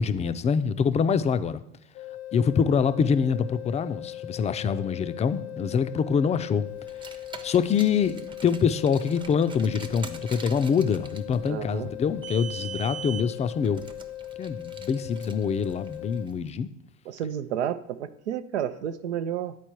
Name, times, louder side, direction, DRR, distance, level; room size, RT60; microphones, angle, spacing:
voice 1, 0.0-1.6 2.3-6.7 7.4-13.8 14.4-16.7, left 6 dB, 20° left, 0.4 m, -25 dB
sound 1, 1.9-16.2, left 13 dB, 70° left, 0.8 m, -39 dB
Car, 6.8-16.3, right 6 dB, 15° right, 0.6 m, -43 dB
voice 2, 11.5-11.9 17.1-19.6, right 9 dB, 85° right, 0.5 m, -31 dB
10.0 x 4.3 x 4.6 m
hypercardioid pair, 75°, 33 cm